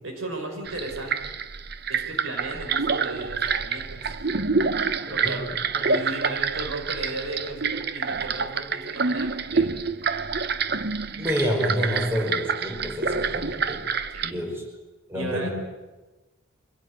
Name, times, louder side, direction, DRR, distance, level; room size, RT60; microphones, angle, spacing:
voice 1, 0.0-1.3 1.9-4.1 5.1-5.5 5.8-9.7 14.1-14.4 15.1-15.5, right 2 dB, 75° right, 3 dB, 5.2 m, -35 dB
sound 1, 0.7-14.3, right 5 dB, 50° right, 0.8 m, -27 dB
voice 2, 4.9-5.4 5.7-6.0 11.2-13.8 14.2-14.6 15.1-15.5, equal, 10° right, 0 dB, 5.0 m, -28 dB
24.5 x 17.0 x 9.6 m, 1.2 s
head